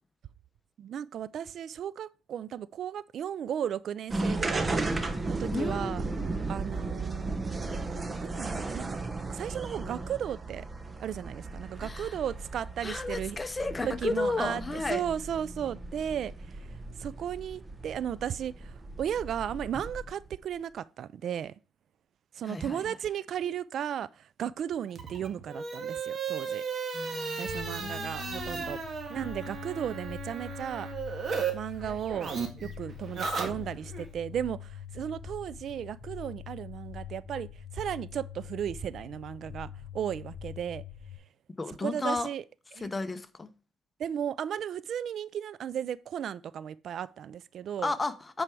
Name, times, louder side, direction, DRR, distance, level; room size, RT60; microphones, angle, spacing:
voice 1, 0.8-4.8 5.3-6.0 6.5-7.4 7.9-9.0 9.3-10.7 11.0-13.4 13.8-16.6 17.0-21.5 22.3-26.6 27.4-28.8 29.1-30.9 31.5-32.3 32.6-37.5 37.7-40.8 41.8-42.4 42.7-42.9 44.0-47.9, right 9 dB, 65° right, 0.3 m, -35 dB
sound 1, 4.1-20.3, right 3 dB, 25° right, 1.0 m, -35 dB
voice 2, 5.5-6.0 11.8-12.2 12.8-15.0 22.4-22.8 26.9-28.7 41.6-42.3 42.8-43.5 47.8-48.4, left 3 dB, 25° left, 0.8 m, -33 dB
sound 2, 24.9-31.5 31.8-34.0, right 5 dB, 50° right, 1.7 m, -35 dB
sound 3, 27.5-41.2, left 8 dB, 50° left, 2.1 m, -44 dB
8.9 x 4.7 x 4.6 m
cardioid pair, 90°, 0 cm